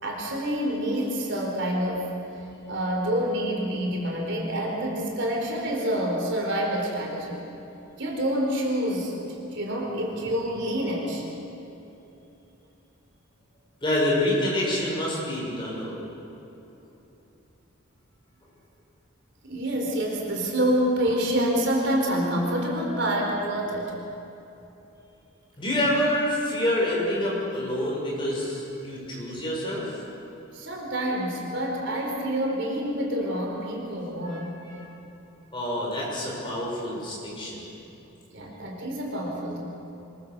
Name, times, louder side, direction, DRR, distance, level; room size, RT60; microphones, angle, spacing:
voice 1, 0.0-2.2 2.7-7.4 8.0-11.2 19.4-23.9 30.5-34.5 38.3-39.6, equal, 55° right, -1 dB, 4.3 m, -27 dB
voice 2, 13.8-16.0 25.6-30.0 34.2-34.9 35.5-37.7, left 1 dB, 20° left, -4 dB, 6.5 m, -27 dB
25.5 x 22.5 x 6.9 m, 2.9 s
head